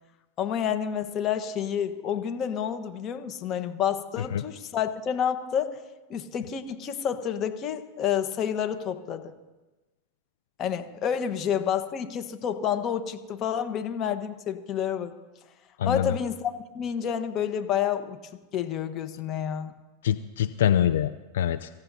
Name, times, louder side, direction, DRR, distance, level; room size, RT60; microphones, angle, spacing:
voice 1, 0.4-5.8 6.1-9.3 10.6-15.1 15.8-18.2 18.5-19.7, left 8 dB, 40° left, 9 dB, 1.2 m, -29 dB
voice 2, 15.8-16.1 20.0-21.7, left 10 dB, 80° left, 12 dB, 0.4 m, -25 dB
27.0 x 14.5 x 2.8 m, 1.1 s
hypercardioid pair, 105°, 0 cm